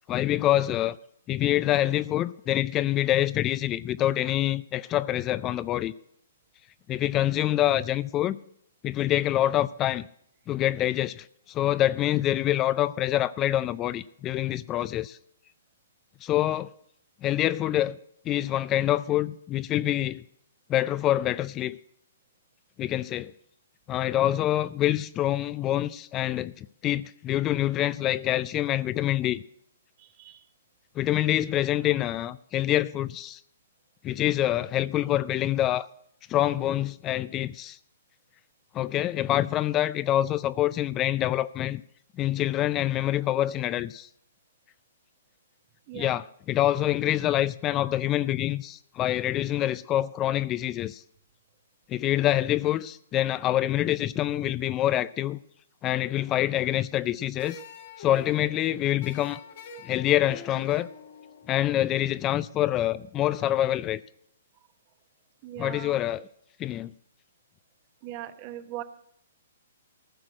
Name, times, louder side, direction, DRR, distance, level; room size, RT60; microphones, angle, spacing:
voice 1, 0.1-1.0 1.3-5.9 6.9-8.4 8.8-10.1 10.5-15.2 16.2-16.7 17.2-18.0 18.3-20.2 20.7-21.8 22.8-23.3 23.9-29.4 31.0-33.4 34.0-35.9 36.3-37.8 38.7-41.8 42.2-44.1 45.9-51.0 51.9-55.4 55.8-57.6 58.0-59.4 59.8-60.9 61.5-64.0 65.6-66.3 66.6-66.9, left 13 dB, 25° left, 0.4 m, -26 dB
voice 2, 30.0-30.4 45.9-46.2 65.4-65.9 68.0-68.8, right 13 dB, 40° right, 1.1 m, -40 dB
sound 1, 57.4-62.5, left 6 dB, 55° left, 1.7 m, -45 dB
15.0 x 6.2 x 7.4 m
hypercardioid pair, 125°, 0 cm